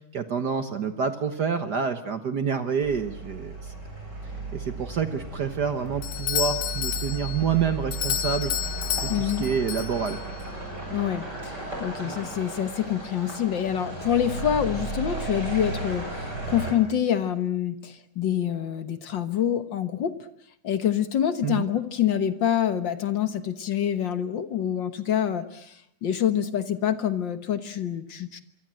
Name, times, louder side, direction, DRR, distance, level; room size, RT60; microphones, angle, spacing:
voice 1, 0.1-3.7 4.5-8.5 9.0-10.2 21.4-21.7, right 6 dB, 80° right, 9 dB, 0.9 m, -28 dB
sound 1, 2.8-16.7, right 2 dB, 30° right, 8.5 m, -35 dB
Doorbell, 6.0-10.5, left 11 dB, 90° left, 3.0 m, -31 dB
voice 2, 9.1-9.4 10.9-20.1 20.6-28.4, left 10 dB, 60° left, 11 dB, 1.2 m, -26 dB
26.0 x 24.0 x 7.7 m, 0.72 s
omnidirectional pair, 3.7 m